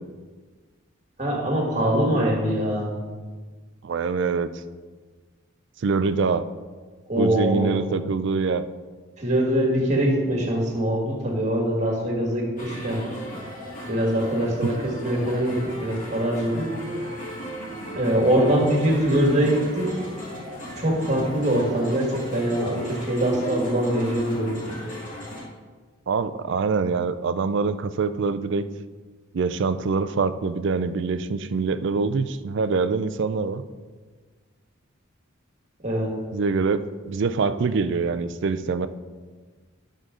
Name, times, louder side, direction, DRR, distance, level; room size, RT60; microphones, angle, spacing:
voice 1, 1.2-2.9 7.1-7.7 9.2-13.0 13.9-16.7 17.9-20.0 20.5-24.8 35.8-36.1, right 1 dB, 35° right, -1 dB, 1.9 m, -23 dB
voice 2, 3.8-4.5 5.8-6.5 7.2-8.7 14.6-14.7 26.1-28.7 29.3-33.6 36.3-38.9, right 4 dB, 55° right, 12 dB, 0.4 m, -24 dB
sound 1, 12.6-25.4, equal, 40° left, 1.8 m, -35 dB
10.5 x 6.4 x 3.7 m, 1.4 s
head